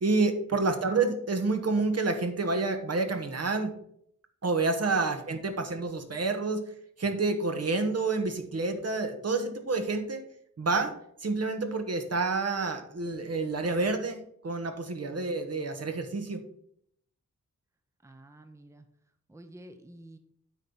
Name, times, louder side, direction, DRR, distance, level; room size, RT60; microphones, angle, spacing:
voice 1, 0.0-3.7 4.4-6.6 7.0-10.2 10.6-10.9 11.2-16.4, right 3 dB, 55° right, 6 dB, 1.1 m, -28 dB
voice 2, 18.0-18.9 19.3-20.2, right 1 dB, 10° right, 7 dB, 0.8 m, -50 dB
8.9 x 3.9 x 5.9 m, 0.69 s
wide cardioid pair, 100°, 30 cm